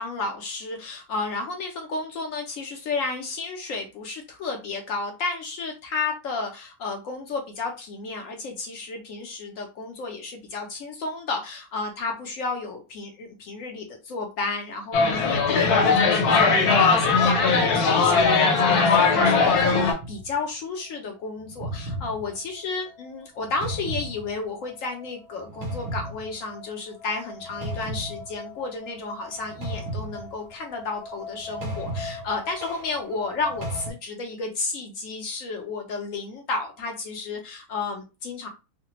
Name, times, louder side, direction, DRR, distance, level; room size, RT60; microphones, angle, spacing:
voice 1, 0.0-38.5, left 3 dB, 70° left, 3 dB, 0.9 m, -32 dB
sound 1, 14.9-19.9, left 4 dB, 85° left, 1.2 m, -19 dB
sound 2, 20.0-20.4 21.4-33.9, equal, 80° right, 1.3 m, -36 dB
3.2 x 2.1 x 2.9 m, 0.29 s
omnidirectional pair, 1.6 m